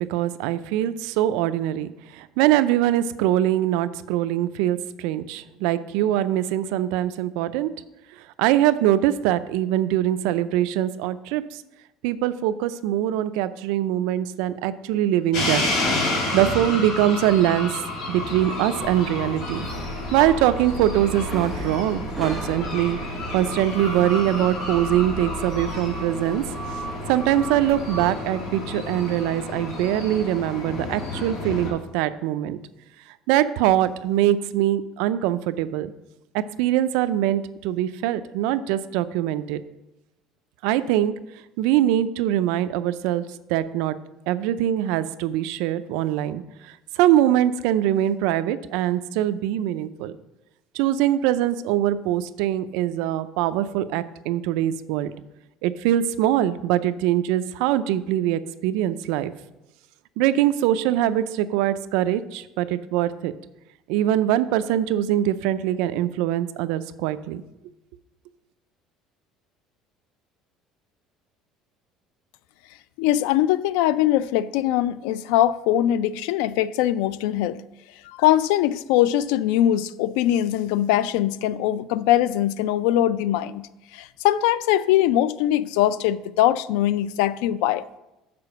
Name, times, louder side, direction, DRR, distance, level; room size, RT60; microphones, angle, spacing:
voice 1, 0.1-7.7 8.2-11.6 12.0-15.7 16.1-17.7 18.1-19.6 20.1-23.0 23.3-26.4 27.1-32.6 33.3-35.9 36.3-39.6 40.6-41.1 41.6-43.2 43.5-44.0 44.3-50.1 50.7-55.1 55.6-59.3 60.2-63.3 63.9-67.4, right 12 dB, 80° right, 0.4 m, -23 dB
sound 1, 15.3-31.7, left 2 dB, 60° left, 2.2 m, -30 dB
sound 2, 18.8-28.1, right 3 dB, ahead, 1.1 m, -36 dB
voice 2, 73.0-77.6 78.1-83.7 83.9-87.8, left 12 dB, 90° left, 0.3 m, -21 dB
6.8 x 4.8 x 6.7 m
cardioid pair, 155°, 0 cm